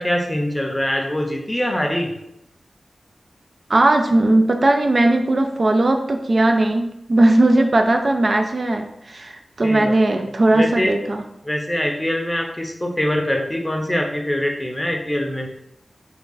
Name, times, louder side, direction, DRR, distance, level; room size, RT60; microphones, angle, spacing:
voice 1, 0.0-2.1 9.6-9.9 10.5-10.9 11.4-15.5, left 1 dB, 15° left, 3 dB, 0.6 m, -23 dB
voice 2, 3.7-11.2, right 2 dB, 50° right, 5 dB, 0.3 m, -18 dB
3.6 x 2.3 x 3.9 m, 0.83 s
wide cardioid pair, 70°, 0 cm